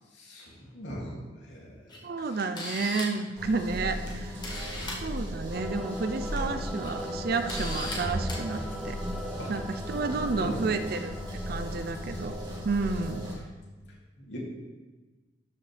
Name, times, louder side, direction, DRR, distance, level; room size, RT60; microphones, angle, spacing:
voice 1, 0.1-2.4 9.4-9.5 9.9-10.7 13.9-14.4, equal, 85° left, -4 dB, 2.6 m, -41 dB
Camera, 1.9-2.0 2.4-3.2 4.1-4.2 4.4-5.0 6.1-6.4 6.8-6.9 7.5-8.0 8.3-8.4, left 1 dB, 25° left, 1.7 m, -36 dB
voice 2, 2.0-4.4 5.0-9.0 9.5-12.4 12.6-13.3, right 4 dB, 55° right, 9 dB, 0.5 m, -31 dB
sound 1, 3.4-13.4, equal, 25° right, 1.9 m, -36 dB
sound 2, 5.5-13.5, equal, ahead, 0.5 m, -41 dB
13.0 x 5.6 x 3.4 m, 1.2 s
head